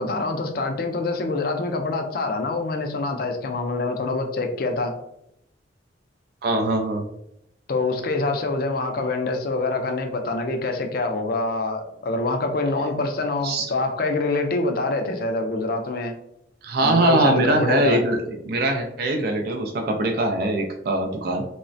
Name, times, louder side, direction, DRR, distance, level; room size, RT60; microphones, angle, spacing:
voice 1, 0.0-5.0 7.7-16.1 16.8-18.0, left 3 dB, 50° left, 5 dB, 0.4 m, -25 dB
voice 2, 6.4-7.0 13.4-13.7 16.6-18.2 18.4-21.5, right 2 dB, 55° right, 3 dB, 0.3 m, -22 dB
3.1 x 2.1 x 2.5 m, 0.78 s
head